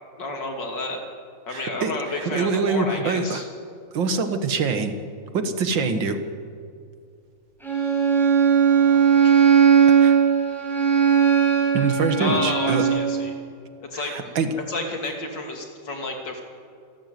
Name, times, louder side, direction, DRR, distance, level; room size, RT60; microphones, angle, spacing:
voice 1, 0.2-1.0 1.5-3.5 8.7-9.5 12.2-13.3 13.9-14.1 14.7-16.4, left 2 dB, 70° left, 2 dB, 3.5 m, -31 dB
voice 2, 1.5-3.4 3.9-4.9 5.3-6.2 10.0-10.2 11.7-12.8 13.9-14.5, right 4 dB, 90° right, 8 dB, 2.2 m, -24 dB
Bowed string instrument, 7.6-13.1, right 7 dB, ahead, 6.0 m, -18 dB
27.5 x 12.5 x 9.4 m, 2.3 s
omnidirectional pair, 2.0 m